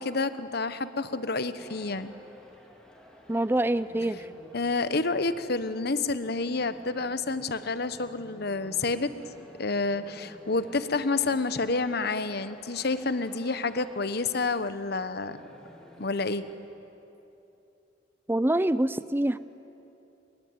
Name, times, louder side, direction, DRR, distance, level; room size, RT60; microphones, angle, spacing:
voice 1, 0.0-2.1 4.5-9.1 9.6-15.4 16.0-16.5, left 3 dB, 55° left, 12 dB, 1.1 m, -29 dB
sound 1, 1.6-16.6, equal, 5° left, 3.8 m, -51 dB
voice 2, 3.3-4.3 18.3-19.4, right 1 dB, 10° right, 15 dB, 0.6 m, -25 dB
29.0 x 22.5 x 9.1 m, 2.9 s
head